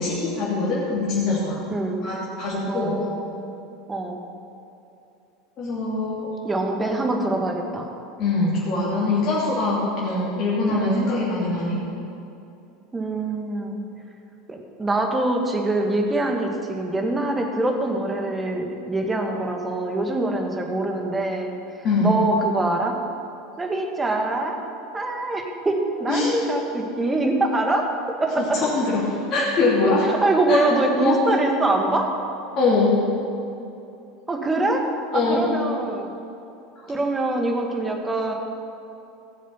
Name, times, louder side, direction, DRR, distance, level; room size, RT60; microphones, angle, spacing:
voice 1, 0.0-1.6 2.0-3.0 5.6-6.3 8.2-11.8 21.8-22.2 26.1-26.3 28.4-30.1 30.5-30.6 30.9-31.2 32.5-32.9 35.1-35.5 36.8-36.9, left 3 dB, 45° left, -7 dB, 2.9 m, -23 dB
voice 2, 1.7-2.0 2.7-3.5 3.9-4.2 6.4-7.9 10.7-11.0 12.9-13.8 14.5-21.5 22.0-23.0 23.6-24.5 24.9-27.9 28.2-28.6 30.1-32.1 34.3-34.8 35.1-36.1 36.8-38.3, right 2 dB, 15° right, 2 dB, 1.8 m, -24 dB
16.0 x 7.3 x 5.8 m, 2.7 s
figure-of-eight pair, 75°, 0 cm